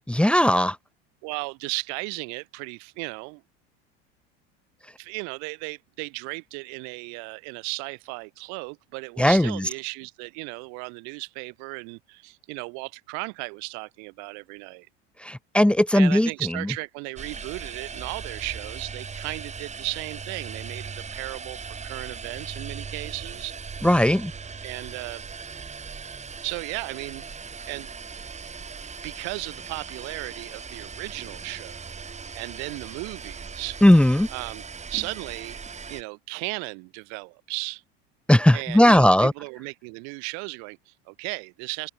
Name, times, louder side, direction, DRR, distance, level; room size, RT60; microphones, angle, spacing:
voice 1, 0.1-0.8 9.2-9.5 15.3-16.3 23.8-24.3 33.8-34.3 38.3-39.3, left 1 dB, 5° left, 1.6 m, -17 dB
voice 2, 1.2-3.4 5.0-14.9 15.9-23.6 24.6-25.2 26.4-27.2 27.7-27.9 29.0-32.0 32.3-33.8 34.3-35.6 35.9-37.8 38.5-41.9, right 36 dB, 65° right, 4.9 m, -35 dB
sound 1, 17.2-36.0, right 5 dB, 20° right, 3.1 m, -39 dB
open air
hypercardioid pair, 85°, 30 cm